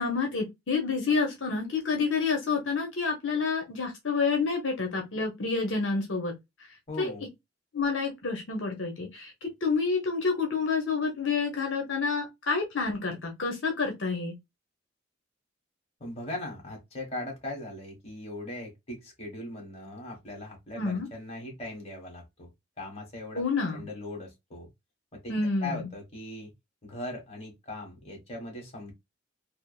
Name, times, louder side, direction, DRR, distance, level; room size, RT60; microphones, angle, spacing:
voice 1, 0.0-6.3 7.0-7.1 7.7-14.3 20.8-21.1 23.4-23.8 25.3-25.8, left 4 dB, 75° left, 0.7 m, -28 dB
voice 2, 6.9-7.3 16.0-22.5 22.8-23.4 23.7-24.7 25.1-25.3 25.6-26.5 26.8-28.9, left 1 dB, 35° left, 1.4 m, -39 dB
3.3 x 2.0 x 2.3 m
head